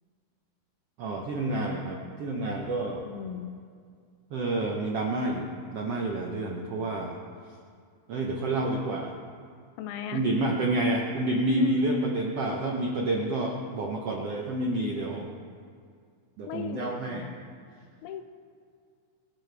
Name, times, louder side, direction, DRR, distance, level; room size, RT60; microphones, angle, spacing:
voice 1, 1.0-3.0 4.3-7.2 8.1-9.1 10.1-15.3 16.4-17.3, right 2 dB, 75° right, 0 dB, 1.4 m, -29 dB
voice 2, 3.0-3.5 9.8-10.2 11.6-11.8 16.5-17.3 18.0-18.2, left 9 dB, 90° left, 8 dB, 2.8 m, -34 dB
25.0 x 10.5 x 3.4 m, 2.2 s
omnidirectional pair, 4.3 m